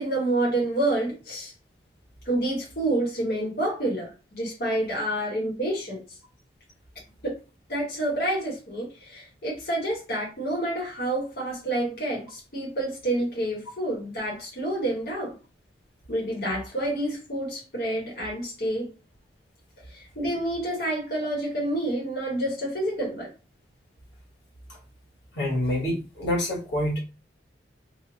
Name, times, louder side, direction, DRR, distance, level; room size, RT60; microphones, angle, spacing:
voice 1, 0.0-1.5 2.2-6.0 7.2-7.3 7.7-15.4 16.1-18.9 19.9-23.3, right 1 dB, 60° left, 1.2 m, -28 dB
voice 2, 25.3-27.0, left 1 dB, 80° left, 1.3 m, -27 dB
3.1 x 2.3 x 4.0 m
head